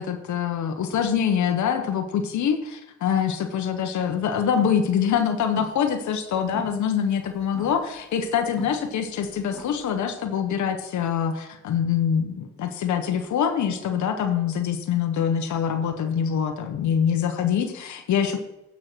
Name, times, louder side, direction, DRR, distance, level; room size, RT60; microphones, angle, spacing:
voice 1, 0.0-18.4, left 8 dB, 70° left, 6 dB, 1.2 m, -24 dB
sound 1, 4.4-4.8 5.1-6.2 6.5-9.9, right 1 dB, ahead, 2.4 m, -43 dB
9.2 x 5.7 x 6.2 m, 0.92 s
cardioid pair, 90°, 30 cm